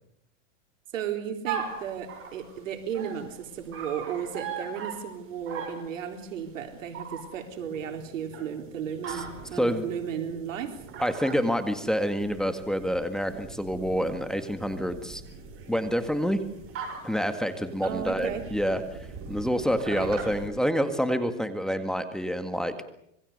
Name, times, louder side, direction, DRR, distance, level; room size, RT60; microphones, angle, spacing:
voice 1, 0.9-10.8 17.8-18.5 19.9-20.1, right 8 dB, 80° right, 5 dB, 3.8 m, -34 dB
sound 1, 1.4-20.5, right 6 dB, 35° right, 7.1 m, -41 dB
voice 2, 9.5-9.8 11.0-15.2 15.7-16.4 17.0-18.8 19.3-22.9, equal, ahead, 8 dB, 1.9 m, -27 dB
26.5 x 22.0 x 6.7 m, 0.74 s
hypercardioid pair, 125°, 38 cm